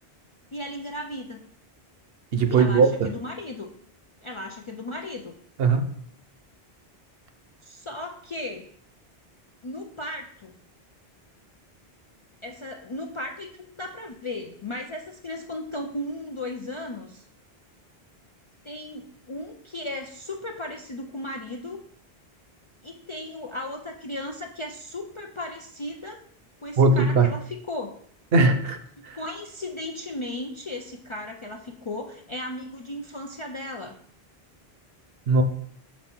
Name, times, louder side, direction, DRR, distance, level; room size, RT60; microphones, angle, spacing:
voice 1, 0.5-1.5 2.5-3.7 4.2-5.3 7.6-8.7 9.6-10.5 12.4-17.2 18.6-21.8 22.8-26.2 26.6-28.0 29.1-34.0, left 1 dB, 45° left, 2 dB, 0.4 m, -36 dB
voice 2, 2.3-3.1 5.6-5.9 26.8-27.3 28.3-28.8 29.0-29.2 35.3-35.4, right 3 dB, 70° right, 8 dB, 0.9 m, -19 dB
5.8 x 4.1 x 4.3 m, 0.62 s
omnidirectional pair, 1.1 m